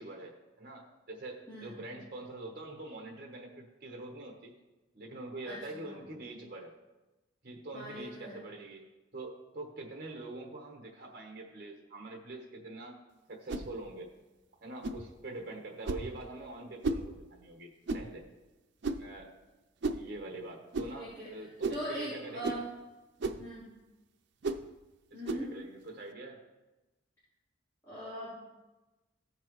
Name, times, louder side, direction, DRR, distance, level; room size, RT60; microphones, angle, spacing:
voice 1, 0.0-4.5 4.9-6.7 7.4-8.9 9.1-14.1 14.6-18.3 19.0-19.3 19.9-22.7 25.1-26.4, right 2 dB, 50° right, 0 dB, 1.1 m, -44 dB
voice 2, 5.5-6.0 7.7-8.4 21.0-21.3 21.7-22.6 23.4-23.7 25.1-25.5 27.9-28.3, right 1 dB, 15° left, -13 dB, 3.4 m, -40 dB
sound 1, 13.5-13.7 14.8-15.0 15.8-16.1 16.8-17.1 17.9-18.1 18.8-19.1 19.8-20.0 20.7-20.9 21.6-21.9 22.4-22.6 23.2-23.4 24.4-24.6 25.2-25.5, right 3 dB, 70° right, 0.5 m, -34 dB
15.0 x 5.7 x 3.1 m, 1.1 s
head